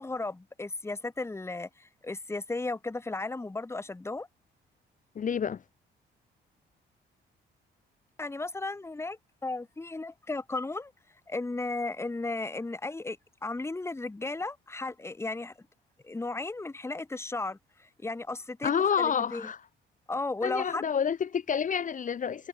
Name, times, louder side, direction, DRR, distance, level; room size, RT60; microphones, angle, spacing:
voice 1, 0.0-4.3 8.2-10.9 11.3-13.2 13.4-15.5 16.0-19.5 20.1-20.8, left 3 dB, 15° left, 1.1 m, -35 dB
voice 2, 5.1-5.6 18.6-19.6 20.4-22.5, left 7 dB, 40° left, 0.8 m, -28 dB
cardioid pair, 90°, 20 cm